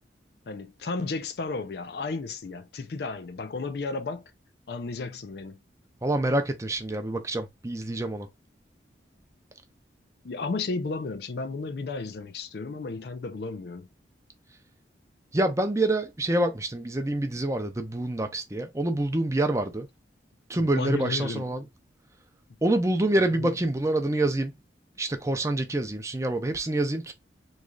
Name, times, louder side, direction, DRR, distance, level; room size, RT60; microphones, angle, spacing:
voice 1, 0.5-4.2 4.7-5.6 10.2-13.9 20.6-21.5 23.3-23.5, left 3 dB, 60° left, 0.4 m, -33 dB
voice 2, 6.0-8.3 15.3-19.9 20.5-21.6 22.6-24.5 25.0-27.1, right 1 dB, 15° right, 0.5 m, -26 dB
3.2 x 2.4 x 3.7 m
head